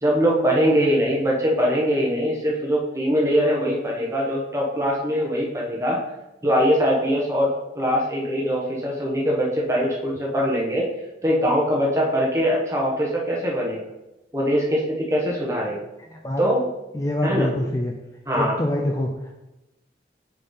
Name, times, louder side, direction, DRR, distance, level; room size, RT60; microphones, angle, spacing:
voice 1, 0.0-6.0 6.4-7.5 7.7-10.8 11.2-13.8 14.3-15.8 16.4-16.6 17.2-17.5 18.3-18.6, equal, 15° right, -3 dB, 1.1 m, -22 dB
voice 2, 16.1-16.4 16.9-17.9 18.3-19.1, left 1 dB, 20° left, 1 dB, 0.4 m, -25 dB
6.5 x 3.8 x 4.2 m, 0.99 s
head